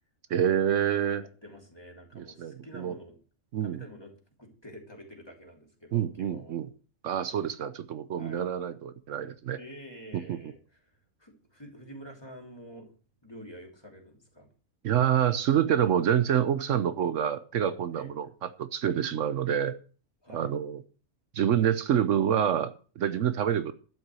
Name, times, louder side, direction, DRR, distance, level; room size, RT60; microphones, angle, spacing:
voice 1, 0.3-1.3 2.2-2.9 3.5-3.8 5.9-6.7 7.0-9.6 10.3-10.4 14.8-19.7 20.3-20.8 21.3-23.7, right 9 dB, 75° right, 12 dB, 1.1 m, -27 dB
voice 2, 1.2-3.2 3.6-4.1 4.4-6.6 8.2-8.4 9.6-10.8 11.2-12.9 13.2-14.5 17.9-18.1 20.2-20.5 23.1-23.3, equal, 20° left, 0 dB, 2.9 m, -48 dB
12.0 x 5.9 x 7.6 m, 0.40 s
omnidirectional pair, 1.3 m